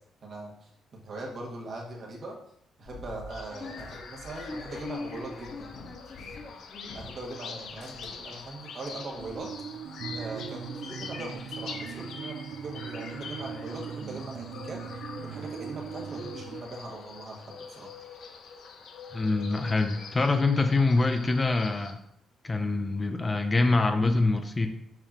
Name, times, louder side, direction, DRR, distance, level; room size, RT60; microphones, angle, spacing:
voice 1, 0.2-2.4 2.8-5.7 6.9-9.5 10.2-12.4 12.6-17.9, right 2 dB, 50° right, -1 dB, 1.8 m, -41 dB
sound 1, 2.9-7.3 7.6-8.5 8.9-9.0 9.1-9.4, left 3 dB, 50° left, 1.5 m, -43 dB
sound 2, 3.3-21.9, left 5 dB, 75° left, 0.9 m, -44 dB
sound 3, 9.2-16.6, right 7 dB, 70° right, 0.6 m, -39 dB
voice 2, 19.1-22.0 22.4-24.7, left 3 dB, 25° left, 6 dB, 0.7 m, -25 dB
7.4 x 4.8 x 3.0 m, 0.71 s
cardioid pair, 95°, 0 cm